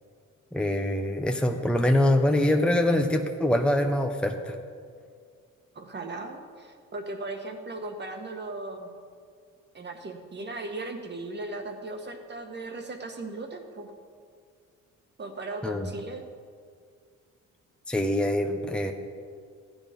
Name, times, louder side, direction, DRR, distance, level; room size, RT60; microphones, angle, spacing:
voice 1, 0.5-4.5 15.6-15.9 17.9-18.9, left 1 dB, 5° left, 3 dB, 0.9 m, -24 dB
voice 2, 5.8-8.9 9.7-13.9 15.2-16.2, right 2 dB, 35° right, 4 dB, 1.7 m, -37 dB
14.5 x 9.3 x 5.3 m, 2.2 s
cardioid pair, 90°, 30 cm